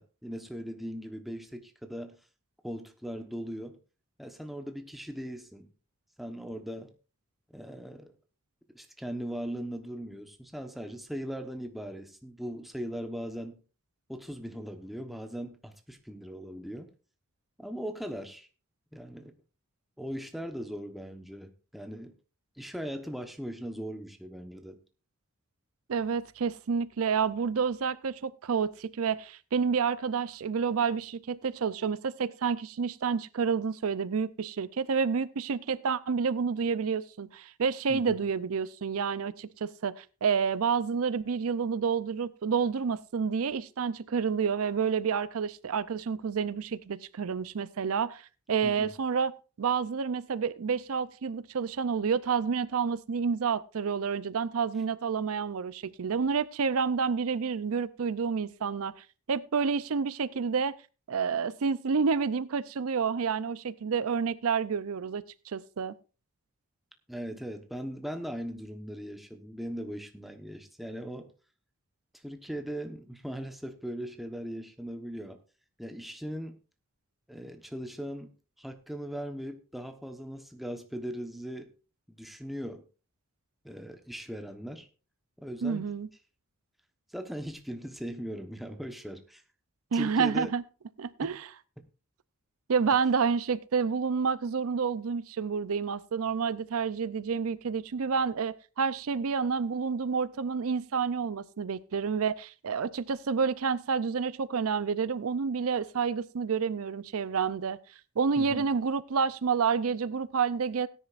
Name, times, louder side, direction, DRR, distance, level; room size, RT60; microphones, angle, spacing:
voice 1, 0.0-2.2 2.6-3.8 4.2-5.7 6.2-6.9 7.5-8.1 8.7-13.6 14.1-16.9 17.6-18.5 18.9-19.3 20.0-22.1 22.6-24.8 37.9-38.2 48.6-48.9 67.1-71.3 72.1-75.4 75.8-76.6 77.3-78.3 78.6-81.7 82.2-82.8 83.6-84.9 85.4-85.9 87.1-89.4 89.9-90.5 91.2-91.3 108.4-108.7, equal, ahead, 1.0 m, -39 dB
voice 2, 25.9-48.2 48.5-49.3 49.6-60.7 61.1-65.9 85.6-86.1 89.9-90.6 91.0-91.5 92.7-107.8 108.2-110.9, right 6 dB, 80° right, 0.5 m, -29 dB
17.5 x 10.0 x 2.5 m
head